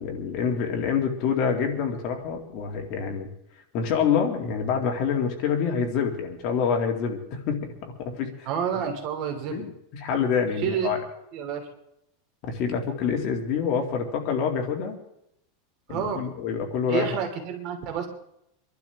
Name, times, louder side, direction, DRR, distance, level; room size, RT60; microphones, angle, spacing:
voice 1, 0.0-3.3 3.7-7.6 8.0-8.5 9.5-11.0 12.4-15.0 15.9-17.2, left 6 dB, 45° left, 2 dB, 2.3 m, -26 dB
voice 2, 8.5-9.6 10.6-10.9 11.3-11.7 15.9-16.2 16.9-18.1, right 7 dB, 45° right, 4 dB, 2.7 m, -29 dB
25.0 x 12.0 x 3.5 m, 0.79 s
supercardioid pair, 160°, 0 cm